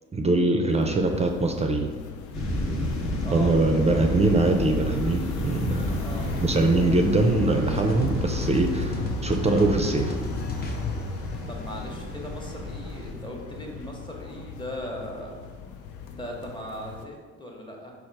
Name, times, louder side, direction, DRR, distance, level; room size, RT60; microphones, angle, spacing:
voice 1, 0.1-1.9 3.3-6.0 6.4-10.1, right 2 dB, 20° right, 4 dB, 0.4 m, -23 dB
sound 1, 0.7-17.0, left 7 dB, 80° left, 0.5 m, -36 dB
sound 2, 2.3-13.1, left 1 dB, 65° left, 0.9 m, -32 dB
voice 2, 3.2-3.5 3.9-4.1 5.9-6.3 11.5-15.4 16.0-17.9, equal, 15° left, 0 dB, 0.9 m, -38 dB
sound 3, 7.7-12.7, equal, 30° left, 0.6 m, -35 dB
4.4 x 2.5 x 4.5 m, 1.5 s
cardioid pair, 90°, 30 cm